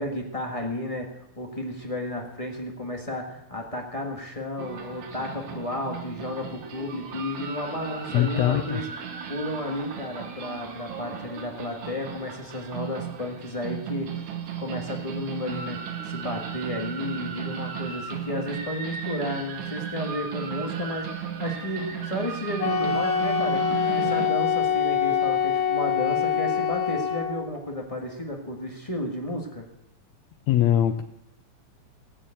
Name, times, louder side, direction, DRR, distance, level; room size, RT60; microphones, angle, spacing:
voice 1, 0.0-8.9 9.3-14.1 14.6-29.7, left 1 dB, 30° left, 1 dB, 0.6 m, -33 dB
sound 1, 4.6-24.3, right 7 dB, 70° right, 2.6 m, -35 dB
voice 2, 8.1-8.8 30.5-31.0, left 11 dB, 75° left, 7 dB, 1.8 m, -22 dB
Wind instrument woodwind instrument, 22.6-27.5, left 7 dB, 60° left, 1.8 m, -24 dB
17.5 x 6.8 x 8.8 m, 0.85 s
omnidirectional pair, 3.4 m